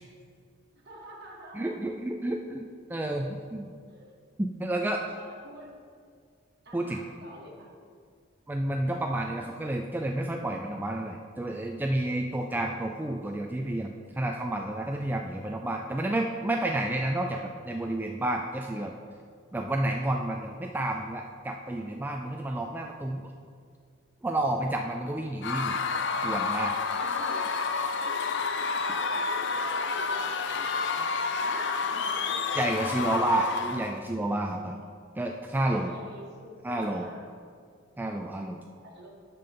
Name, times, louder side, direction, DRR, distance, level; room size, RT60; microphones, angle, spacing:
voice 1, 0.8-1.8 3.9-4.2 5.1-5.7 6.6-7.7 26.9-27.4 28.7-33.1 35.7-37.2 38.8-39.1, right 1 dB, 55° right, -3 dB, 1.7 m, -47 dB
voice 2, 1.5-3.7 4.4-5.0 6.7-7.0 8.5-18.9 19.5-23.3 24.2-25.8 26.2-26.7 32.6-34.7 35.2-35.9 36.6-37.1 38.0-38.6, right 1 dB, 10° right, 1 dB, 0.3 m, -30 dB
Screaming / Cheering / Crowd, 25.4-34.0, left 4 dB, 60° left, 0.5 m, -29 dB
12.0 x 5.3 x 3.8 m, 2.1 s
head